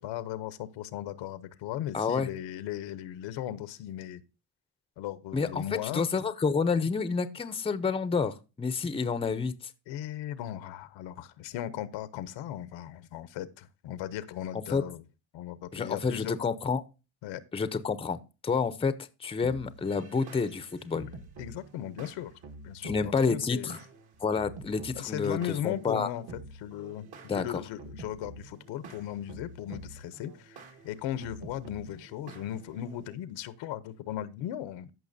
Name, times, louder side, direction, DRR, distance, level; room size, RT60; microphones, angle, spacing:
voice 1, 0.0-4.2 5.0-6.2 9.9-15.0 15.3-16.4 17.2-17.4 20.0-20.6 21.4-22.3 22.6-23.8 25.0-26.3 26.5-34.9, left 12 dB, 80° left, 0.8 m, -37 dB
voice 2, 1.9-2.3 5.3-5.6 5.9-9.5 14.5-14.8 15.7-16.8 17.5-18.2 18.4-18.9 19.2-21.1 22.8-23.8 24.2-25.4 25.6-26.1 27.3-27.4, left 5 dB, 15° left, 0.6 m, -29 dB
sound 1, 19.4-33.1, right 3 dB, 60° right, 1.8 m, -48 dB
14.0 x 5.7 x 2.6 m
cardioid pair, 105°, 44 cm